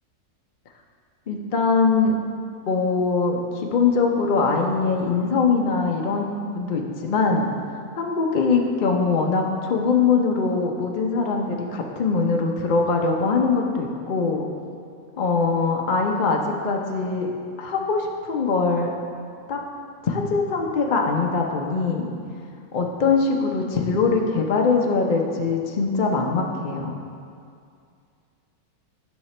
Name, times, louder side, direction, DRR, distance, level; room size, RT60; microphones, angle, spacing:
voice 1, 1.3-2.1 2.7-7.5 8.0-14.5 15.2-17.3 17.6-18.9 19.5-19.6 20.0-22.1 22.7-26.9, left 4 dB, 60° left, 1 dB, 0.5 m, -22 dB
11.0 x 5.8 x 3.2 m, 2.3 s
omnidirectional pair, 1.7 m